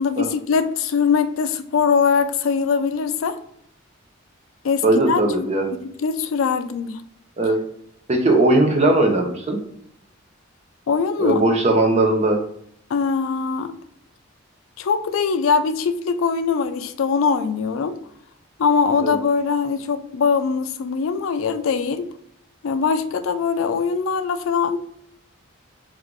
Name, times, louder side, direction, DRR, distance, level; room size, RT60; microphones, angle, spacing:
voice 1, 0.0-3.4 4.6-5.5 6.0-7.0 10.9-11.4 12.9-13.7 14.8-18.0 18.6-22.1 22.6-24.8, left 5 dB, 70° left, 10 dB, 0.4 m, -22 dB
voice 2, 4.8-5.7 7.4-7.6 8.1-9.6 11.2-12.4 19.0-19.2, right 2 dB, 30° right, 3 dB, 0.7 m, -18 dB
3.8 x 2.4 x 4.5 m, 0.70 s
head